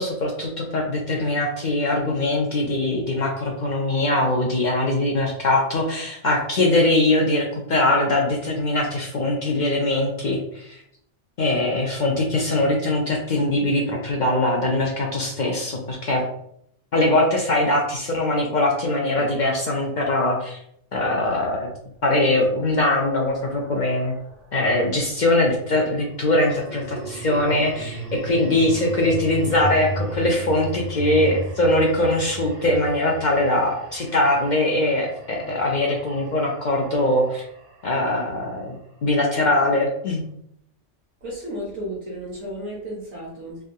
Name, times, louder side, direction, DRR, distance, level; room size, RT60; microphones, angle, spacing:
voice 1, 0.0-10.8 11.4-16.3 16.9-20.6 20.9-21.7 22.0-24.1 24.5-37.5 37.8-40.2, left 1 dB, 55° left, 0 dB, 0.5 m, -22 dB
sound 1, 22.0-24.5 26.1-38.4, right 1 dB, 50° right, 0.6 m, -35 dB
voice 2, 41.2-43.6, equal, 75° right, -7 dB, 1.4 m, -33 dB
3.4 x 2.2 x 2.6 m, 0.71 s
omnidirectional pair, 1.2 m